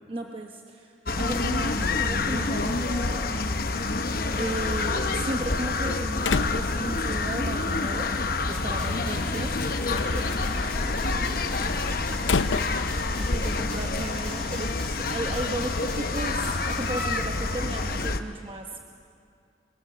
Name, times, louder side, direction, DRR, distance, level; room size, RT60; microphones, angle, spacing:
voice 1, 0.1-3.6 4.4-8.1 8.5-10.2 13.2-14.7 15.0-18.8, right 1 dB, 30° right, 2 dB, 1.0 m, -35 dB
sound 1, 1.1-18.2, left 3 dB, 50° left, 0.9 m, -27 dB
Slam, 5.2-14.6, left 4 dB, 90° left, 0.7 m, -34 dB
sound 2, 8.5-17.2, left 2 dB, 5° left, 6.5 m, -45 dB
voice 2, 8.6-9.3 9.9-12.8, right 1 dB, 70° right, -2 dB, 7.7 m, -43 dB
24.0 x 23.0 x 6.8 m, 2.4 s
head